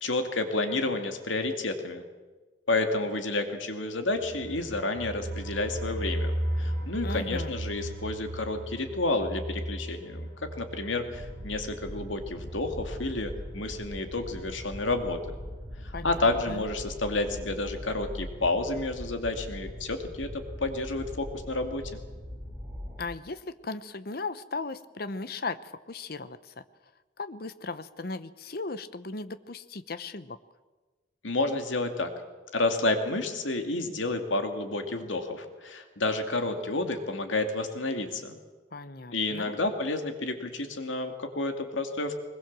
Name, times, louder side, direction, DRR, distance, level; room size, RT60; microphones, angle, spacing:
voice 1, 0.0-2.0 2.7-10.3 10.6-15.2 15.8-22.0 31.2-32.1 32.5-38.4 39.1-42.2, left 2 dB, 85° left, 6 dB, 2.4 m, -30 dB
sound 1, 4.2-14.9 15.2-15.3 15.6-15.7, right 1 dB, 20° left, 5.5 m, -36 dB
voice 2, 7.0-7.5 15.9-16.2 16.5-16.6 23.0-26.6 27.2-30.4 38.7-39.6, left 3 dB, 50° left, 13 dB, 0.9 m, -37 dB
sound 2, 11.1-23.0, equal, 10° right, 3.7 m, -41 dB
22.0 x 20.5 x 7.5 m, 1.3 s
head